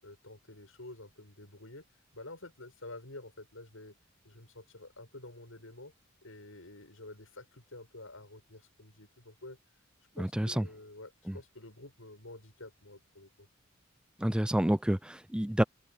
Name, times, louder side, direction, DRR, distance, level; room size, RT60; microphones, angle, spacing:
voice 1, 0.0-1.8 2.1-4.0 4.2-5.9 6.2-9.6 10.2-13.5, left 2 dB, 85° left, 7.9 m, -49 dB
voice 2, 10.2-10.7 11.3-11.4 14.2-15.6, right 1 dB, 5° right, 0.4 m, -29 dB
head